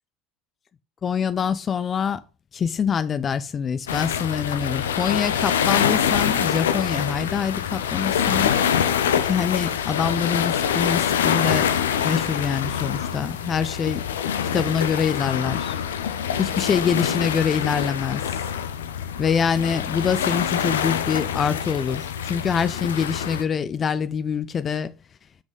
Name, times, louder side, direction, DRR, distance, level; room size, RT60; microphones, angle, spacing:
voice 1, 1.0-2.2 2.5-8.5 9.2-11.7 12.0-14.0 14.5-15.8 16.4-18.4 19.2-24.9, left 7 dB, 35° left, 0.4 m, -25 dB
sound 1, 3.9-23.4, left 8 dB, 80° left, 0.6 m, -25 dB
6.3 x 5.2 x 5.2 m
hypercardioid pair, 70°, 0 cm